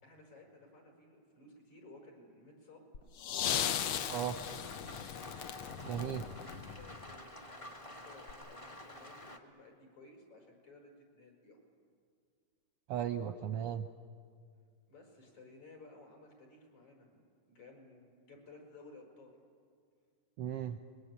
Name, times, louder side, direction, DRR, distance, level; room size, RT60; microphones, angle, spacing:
voice 1, 0.0-2.8 3.6-4.6 6.1-11.6 14.9-19.3, left 2 dB, 65° left, 1 dB, 6.6 m, -57 dB
sound 1, 2.9-7.1 8.3-8.4, left 9 dB, 90° left, 1.1 m, -37 dB
Rain, 3.7-9.4, left 1 dB, 25° left, 0.7 m, -50 dB
voice 2, 5.8-6.2 12.9-13.9 20.4-20.8, right 9 dB, 70° right, 8 dB, 1.4 m, -36 dB
29.5 x 22.0 x 8.4 m, 2.2 s
omnidirectional pair, 3.5 m